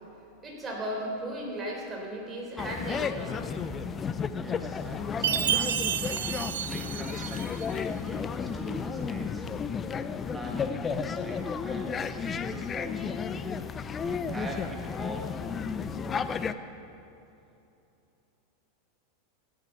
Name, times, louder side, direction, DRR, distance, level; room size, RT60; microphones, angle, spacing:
voice 1, 0.4-3.9, right 1 dB, 20° right, -1 dB, 3.9 m, -36 dB
sound 1, 2.6-16.5, left 6 dB, 25° left, 0.5 m, -33 dB
voice 2, 4.3-5.8 6.6-9.5 10.3-13.6 14.0-15.4, right 1 dB, 5° right, 0 dB, 1.8 m, -42 dB
Chime, 5.2-7.7, right 10 dB, 80° right, 0.6 m, -30 dB
16.0 x 9.6 x 5.9 m, 2.8 s
hypercardioid pair, 115°, 0 cm